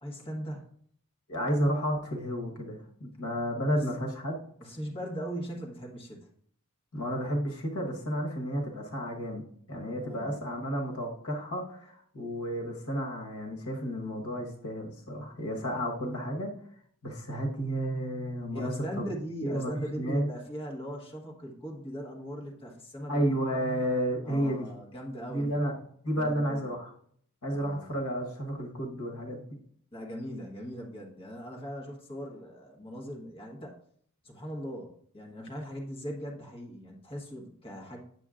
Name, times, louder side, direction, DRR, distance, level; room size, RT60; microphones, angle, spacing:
voice 1, 0.0-0.7 4.6-6.2 9.9-10.4 18.5-23.3 24.2-25.6 26.1-26.7 27.5-28.0 29.9-33.7 34.2-38.0, equal, 25° left, -2 dB, 1.2 m, -39 dB
voice 2, 1.3-4.4 6.9-9.4 9.7-16.5 17.0-19.0 19.4-20.3 23.1-24.7 25.3-25.7 26.0-26.9 27.4-29.6, equal, 75° left, 1 dB, 1.4 m, -32 dB
8.9 x 6.9 x 2.5 m, 0.63 s
head